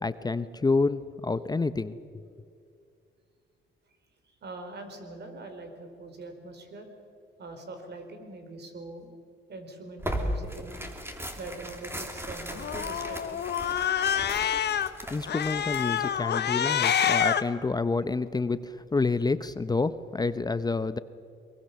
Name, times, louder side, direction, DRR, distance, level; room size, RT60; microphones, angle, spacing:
voice 1, 0.0-2.2 15.1-21.0, left 3 dB, 20° left, 13 dB, 0.7 m, -28 dB
voice 2, 4.4-6.9 7.4-9.1 9.5-10.8 11.4-13.4, right 2 dB, 60° right, 6 dB, 4.7 m, -43 dB
Tearing, 10.0-16.2, equal, 10° right, 3.2 m, -37 dB
Cat, 12.6-14.9 15.3-17.4, left 9 dB, 60° left, 1.1 m, -27 dB
23.0 x 22.5 x 6.9 m, 2.5 s
cardioid pair, 90°, 20 cm